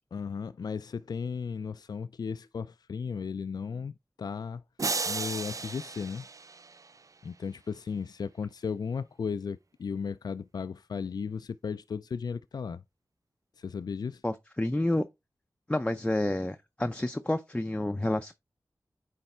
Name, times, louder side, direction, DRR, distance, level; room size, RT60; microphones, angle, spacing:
voice 1, 0.1-4.6 5.1-6.3 7.2-12.8 13.6-14.2, left 6 dB, 70° left, 0.3 m, -35 dB
sound 1, 4.8-7.1, right 4 dB, 50° right, 0.5 m, -34 dB
voice 2, 14.2-15.0 15.7-18.3, left 1 dB, 15° left, 0.5 m, -29 dB
9.1 x 3.3 x 4.3 m
wide cardioid pair, 65°, 7 cm